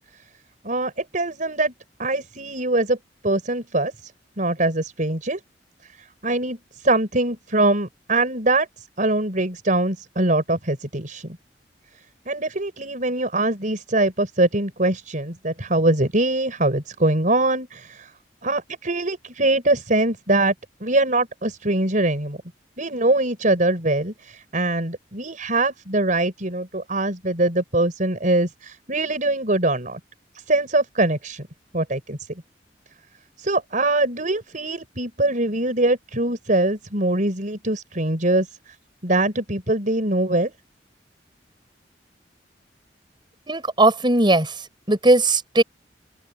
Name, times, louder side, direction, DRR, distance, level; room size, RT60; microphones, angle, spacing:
voice 1, 0.6-1.7 2.0-3.0 3.2-3.9 4.4-5.4 6.2-6.6 6.8-8.7 9.0-11.4 12.3-18.1 18.4-20.5 20.8-22.4 22.8-30.0 30.5-31.5 31.7-32.2 33.4-38.5 39.0-40.5, right 2 dB, 50° right, 5.3 m, -22 dB
voice 2, 43.5-45.6, right 2 dB, 25° right, 6.9 m, -18 dB
open air
head